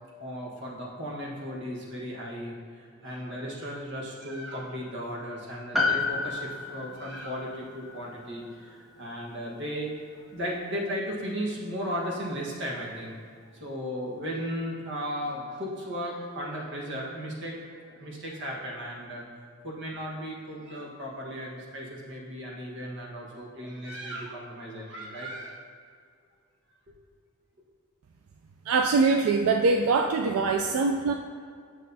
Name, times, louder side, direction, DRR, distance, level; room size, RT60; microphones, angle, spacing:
voice 1, 0.2-9.9 10.3-13.1 13.6-17.6 17.9-19.2 19.6-25.6, equal, 60° right, -3 dB, 1.3 m, -36 dB
Piano, 5.7-10.3 10.6-10.7, left 3 dB, ahead, 0.6 m, -32 dB
voice 2, 28.7-31.1, right 4 dB, 85° right, 4 dB, 0.3 m, -23 dB
8.7 x 6.3 x 2.7 m, 2.2 s
head